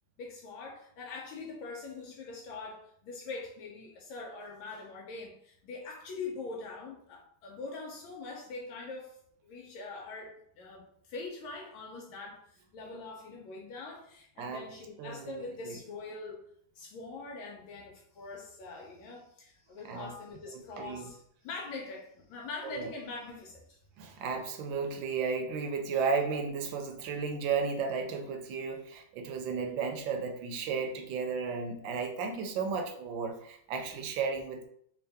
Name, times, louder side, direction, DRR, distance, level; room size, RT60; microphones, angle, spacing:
voice 1, 0.2-9.2 9.4-16.4 16.7-23.8, left 3 dB, 80° left, 0 dB, 1.4 m, -43 dB
voice 2, 15.0-15.8 19.8-20.1 20.5-21.1 22.6-22.9 24.0-34.7, right 5 dB, 75° right, 6 dB, 1.3 m, -34 dB
3.6 x 2.6 x 3.4 m, 0.67 s
omnidirectional pair, 2.2 m